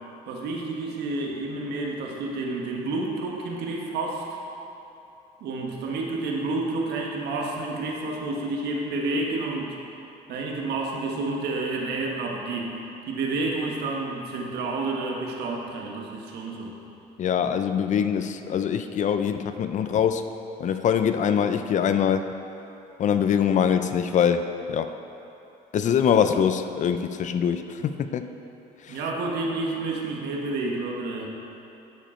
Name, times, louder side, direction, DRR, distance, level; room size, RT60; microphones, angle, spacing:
voice 1, 0.3-4.2 5.4-9.8 10.3-12.7 13.1-16.8 28.9-31.3, right 2 dB, 80° right, 0 dB, 1.3 m, -29 dB
voice 2, 17.2-20.2 20.6-22.2 23.0-24.9 25.7-28.3 28.9-29.0, left 8 dB, 45° left, 9 dB, 0.5 m, -23 dB
11.5 x 5.1 x 4.4 m, 3.0 s
cardioid pair, 110°, 17 cm